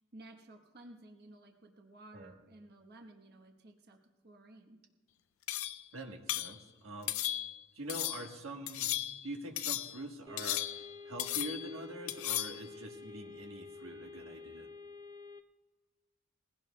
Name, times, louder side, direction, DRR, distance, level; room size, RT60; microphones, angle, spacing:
voice 1, 0.1-4.0 4.2-4.8, right 1 dB, 50° right, 3 dB, 1.1 m, -55 dB
sound 1, 5.5-5.9 6.3-6.6 7.1-7.6 7.9-8.3 8.7-9.3 9.6-10.0 10.4-10.9 11.2-11.7 12.1-12.6, left 14 dB, 75° left, 0.4 m, -36 dB
voice 2, 5.9-7.1 7.7-8.9 9.2-14.7, right 1 dB, 80° right, 2 dB, 1.3 m, -44 dB
sound 2, 10.3-15.4, left 4 dB, 20° right, 0.5 m, -50 dB
20.0 x 16.0 x 2.3 m, 1.2 s
head